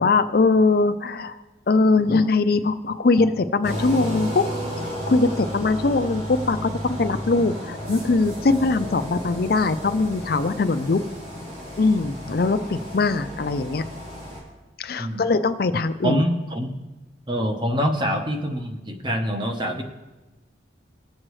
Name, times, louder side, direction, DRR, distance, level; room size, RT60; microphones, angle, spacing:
voice 1, 0.0-1.4 1.7-4.4 5.1-6.7 7.0-11.0 11.8-13.9 14.8-16.2, left 3 dB, 50° left, 11 dB, 0.4 m, -21 dB
sound 1, 3.6-14.4, equal, 40° right, 3.8 m, -33 dB
voice 2, 16.0-16.8 17.3-19.8, equal, 25° right, 3 dB, 1.0 m, -25 dB
19.5 x 7.5 x 3.2 m, 1.1 s
head